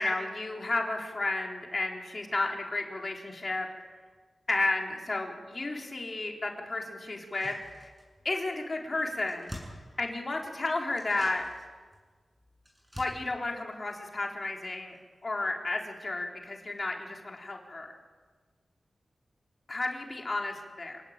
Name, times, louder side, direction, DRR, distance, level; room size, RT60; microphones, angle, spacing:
voice 1, 0.0-3.7 4.5-7.9 8.2-9.5 10.0-11.4 13.0-15.0 15.2-18.0 19.7-21.0, left 2 dB, 35° left, 1 dB, 4.0 m, -32 dB
sound 1, 7.1-8.3 8.6-8.7 8.9-10.5 10.9-14.7 14.9-15.0, equal, 5° right, 7.4 m, -48 dB
28.0 x 18.5 x 9.0 m, 1.5 s
wide cardioid pair, 145°, 0 cm